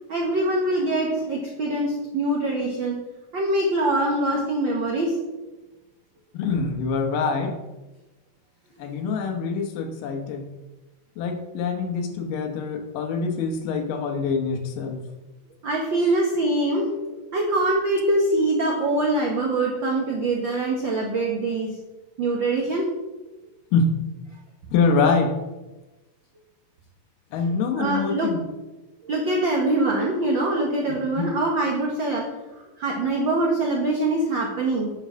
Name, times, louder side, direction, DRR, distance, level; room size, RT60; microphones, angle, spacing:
voice 1, 0.0-3.0 3.3-5.2 15.6-21.7 22.2-22.9 27.8-28.3 29.0-32.2 32.8-34.9, right 2 dB, 80° right, -1 dB, 1.0 m, -24 dB
voice 2, 6.3-7.6 8.8-10.5 11.2-15.0 23.7-23.9 24.7-25.4 27.3-28.4 30.9-31.2, left 4 dB, 75° left, 5 dB, 2.5 m, -25 dB
9.3 x 4.7 x 6.2 m, 1.1 s
omnidirectional pair, 4.0 m